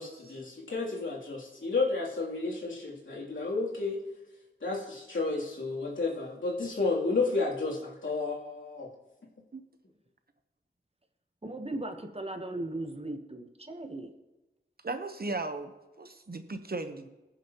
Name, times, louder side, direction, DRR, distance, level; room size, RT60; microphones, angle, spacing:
voice 1, 0.0-4.0 4.6-8.9, left 3 dB, 80° left, -4 dB, 3.0 m, -31 dB
voice 2, 11.4-14.1, right 2 dB, 30° right, 6 dB, 1.1 m, -37 dB
voice 3, 14.8-17.1, right 3 dB, 50° right, 8 dB, 1.0 m, -36 dB
21.0 x 7.1 x 3.0 m, 1.1 s
wide cardioid pair, 80°, 19 cm